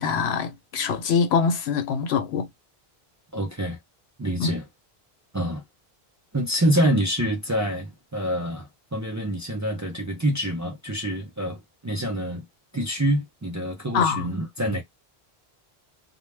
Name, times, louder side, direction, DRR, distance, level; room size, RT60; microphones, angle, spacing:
voice 1, 0.0-2.5 4.4-4.5 13.9-14.3, left 6 dB, 85° left, 0.9 m, -24 dB
voice 2, 3.3-3.8 4.2-4.6 5.3-5.6 6.3-12.4 12.7-14.8, right 1 dB, 25° right, 0.4 m, -26 dB
2.2 x 2.2 x 3.2 m
omnidirectional pair, 1.1 m